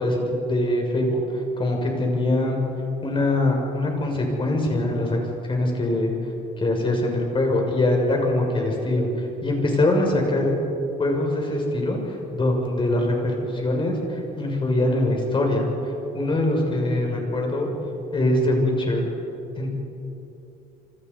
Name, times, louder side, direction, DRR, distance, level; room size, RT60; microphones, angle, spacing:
voice 1, 0.0-2.6 3.0-5.2 5.4-6.1 6.6-10.6 11.0-15.7 16.1-17.7 18.1-19.1 19.6-19.7, left 1 dB, 30° left, 1 dB, 6.8 m, -23 dB
28.0 x 26.0 x 5.6 m, 2.9 s
cardioid pair, 110°, 17 cm